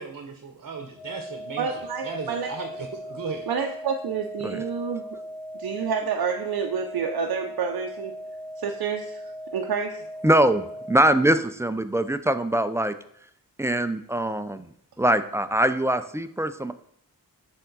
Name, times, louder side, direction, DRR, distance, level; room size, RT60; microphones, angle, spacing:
voice 1, 0.0-1.7 2.0-3.5, right 4 dB, 55° right, 5 dB, 0.8 m, -36 dB
sound 1, 0.9-11.0, equal, 70° left, 1.3 m, -38 dB
voice 2, 1.6-2.5 3.5-5.1 5.5-8.1 8.6-9.2 9.5-10.0, right 6 dB, 85° right, 2 dB, 0.6 m, -28 dB
voice 3, 10.2-12.9 13.6-14.7 15.0-16.7, right 1 dB, 10° right, 11 dB, 0.3 m, -23 dB
6.8 x 3.6 x 3.9 m, 0.69 s
cardioid pair, 60°, 36 cm